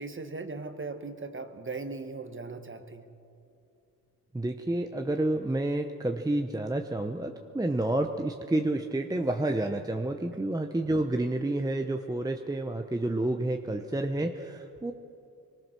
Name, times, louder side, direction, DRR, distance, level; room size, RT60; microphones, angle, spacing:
voice 1, 0.0-3.1 10.3-10.5 13.7-13.9, right 3 dB, 30° right, 7 dB, 1.6 m, -39 dB
voice 2, 4.3-14.9, right 1 dB, 10° right, 4 dB, 0.9 m, -29 dB
22.5 x 19.5 x 6.2 m, 2.6 s
cardioid pair, 80°, 38 cm